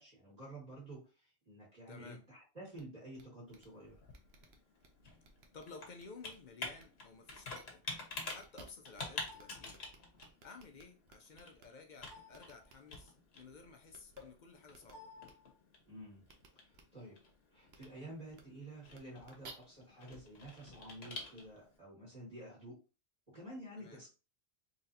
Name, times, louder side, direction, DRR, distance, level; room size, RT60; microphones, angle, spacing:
voice 1, 0.0-4.0 15.9-16.2 16.7-17.2 17.5-22.8 23.3-24.1, right 1 dB, 35° right, 2.0 m, -51 dB
voice 2, 1.9-2.3 5.5-7.8 8.3-9.8 10.4-15.1 23.7-24.0, left 4 dB, 50° left, 0.7 m, -54 dB
sound 1, 2.7-2.8 3.1-3.2 3.5-3.7 4.1-4.9 5.2-5.6 6.0-6.3 6.8-6.9 7.2-7.6 8.1-9.0 9.3-9.4 9.7-11.6 12.0-13.0 13.9-14.2 14.7-14.9 15.2-15.3 16.2-16.5 16.7-16.8 17.7-17.9 18.3-18.4 18.9-19.5, right 4 dB, 75° right, 1.0 m, -57 dB
Computer keyboard, 3.5-21.8, left 3 dB, 70° left, 1.3 m, -49 dB
4.0 x 3.0 x 2.7 m
omnidirectional pair, 1.1 m